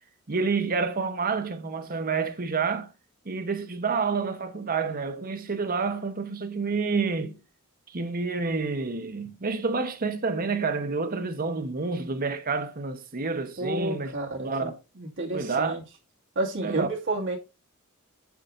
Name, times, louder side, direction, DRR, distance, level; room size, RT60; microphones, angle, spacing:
voice 1, 0.3-2.9 3.2-7.4 7.9-14.1 14.4-14.8 15.3-15.8 16.6-16.9, right 4 dB, 40° right, 0.9 m, -28 dB
voice 2, 13.6-15.8 16.4-17.4, right 2 dB, 60° right, 1.9 m, -30 dB
8.3 x 6.6 x 2.5 m
head